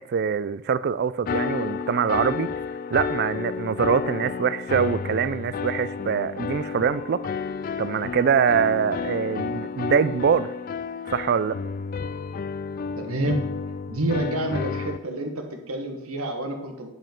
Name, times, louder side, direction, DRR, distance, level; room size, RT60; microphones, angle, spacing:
voice 1, 0.0-2.5 2.9-7.2 7.8-10.5 11.1-11.6, right 7 dB, 45° right, 0.3 m, -24 dB
sound 1, 1.2-15.0, left 5 dB, 40° left, 0.3 m, -31 dB
voice 2, 13.0-13.5 13.9-16.9, right 2 dB, 75° right, 1.5 m, -28 dB
9.8 x 5.4 x 5.2 m
head